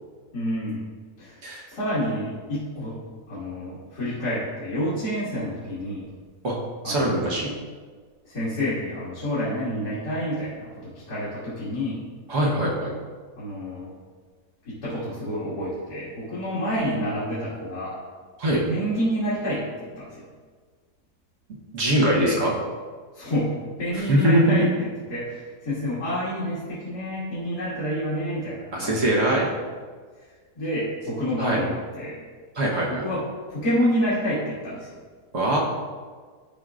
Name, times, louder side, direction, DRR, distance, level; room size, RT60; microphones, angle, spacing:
voice 1, 0.3-0.8 1.2-1.4 1.7-3.0 3.3-6.1 6.8-7.3 8.2-12.0 13.3-13.9 14.6-18.0 18.7-20.3 22.1-22.4 23.1-23.5 23.8-24.7 25.1-29.1 30.6-32.2 32.9-33.2 33.5-35.0, equal, 75° left, -12 dB, 2.8 m, -28 dB
voice 2, 6.8-7.5 12.3-12.9 18.4-18.6 21.7-22.5 24.1-24.7 28.7-29.5 31.4-31.6 32.5-33.1 35.3-35.6, right 1 dB, 50° right, -3 dB, 1.6 m, -22 dB
12.0 x 4.7 x 2.5 m, 1.5 s
omnidirectional pair, 1.7 m